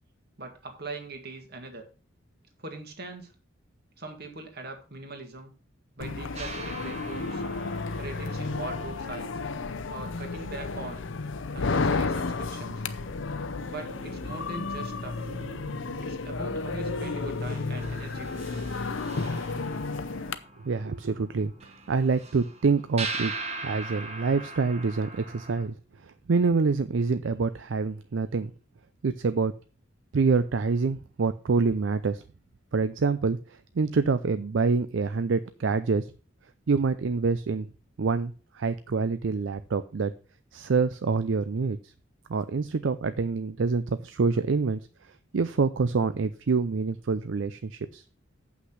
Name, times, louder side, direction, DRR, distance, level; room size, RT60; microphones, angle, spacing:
voice 1, 0.4-1.8 2.6-3.3 4.0-5.5 6.0-7.4 8.0-9.3 9.9-11.0 11.5-12.8 13.7-15.2 16.0-18.5, right 2 dB, 55° right, 4 dB, 2.0 m, -41 dB
sound 1, 6.0-20.4, left 3 dB, 75° left, 0.7 m, -32 dB
sound 2, 6.4-11.2 12.7-12.8 13.2-25.6, right 3 dB, 35° right, 1.4 m, -42 dB
voice 2, 20.6-21.5 21.9-23.3 23.6-25.7 26.0-28.5 29.0-29.5 30.1-32.2 32.7-36.1 36.7-37.7 38.0-40.1 40.5-41.8 42.3-44.8 45.3-48.0, right 4 dB, 70° right, 12 dB, 0.5 m, -26 dB
8.0 x 5.9 x 5.7 m, 0.35 s
head